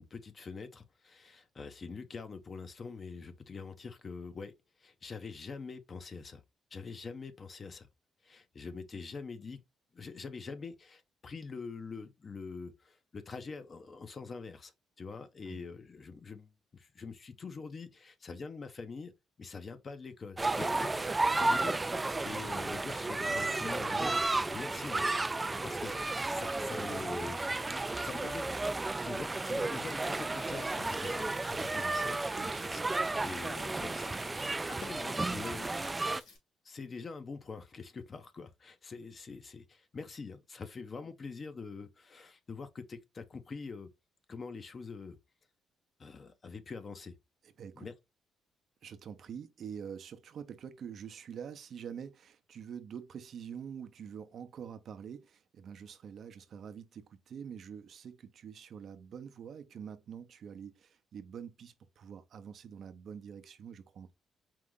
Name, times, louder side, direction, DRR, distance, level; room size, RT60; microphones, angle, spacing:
voice 1, 0.0-6.4 6.7-7.9 8.2-9.6 9.9-14.7 15.0-19.1 19.4-21.8 22.2-25.1 25.6-27.4 28.0-32.2 32.7-32.8 33.2-36.2 36.6-43.9 44.3-45.2 46.0-47.1 47.8-47.9, left 4 dB, 40° left, 0.7 m, -45 dB
sound 1, 20.4-36.2, right 2 dB, 20° right, 0.3 m, -33 dB
sound 2, 30.3-36.4, left 4 dB, 85° left, 2.3 m, -58 dB
voice 2, 32.4-32.7 47.4-47.9 48.8-64.1, right 7 dB, 60° right, 0.6 m, -46 dB
4.6 x 2.5 x 3.7 m
cardioid pair, 90°, 0 cm